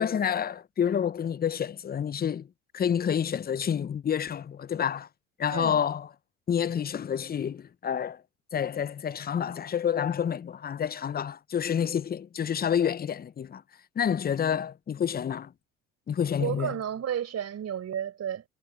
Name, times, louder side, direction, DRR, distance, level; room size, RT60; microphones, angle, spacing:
voice 1, 0.0-2.5 2.7-5.1 5.4-6.1 6.5-8.2 8.5-13.6 14.0-15.5 16.1-16.7, left 8 dB, 25° left, 0.7 m, -28 dB
voice 2, 16.4-18.4, right 9 dB, 40° right, 4.6 m, -32 dB
hypercardioid pair, 70°, 38 cm